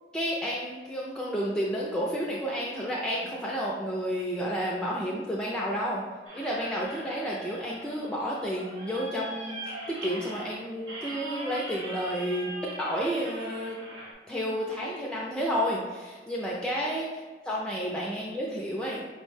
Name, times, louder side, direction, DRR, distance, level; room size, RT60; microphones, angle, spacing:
voice 1, 0.1-6.0 6.3-13.8 14.3-19.0, equal, 5° left, -4 dB, 0.3 m, -31 dB
sound 1, 6.3-14.1, right 2 dB, 85° right, 0.9 m, -41 dB
5.3 x 2.1 x 3.2 m, 1.4 s
head